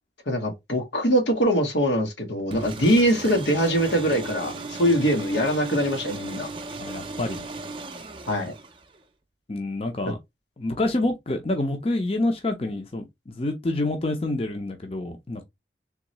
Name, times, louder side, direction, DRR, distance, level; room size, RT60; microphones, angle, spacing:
voice 1, 0.3-6.5 8.3-8.5, equal, 90° left, 1.4 m, -23 dB
sound 1, 2.5-9.0, right 3 dB, 30° right, 0.5 m, -36 dB
voice 2, 6.8-7.5 9.5-10.2 10.6-15.4, left 2 dB, 35° left, 0.6 m, -27 dB
3.6 x 3.1 x 3.0 m
head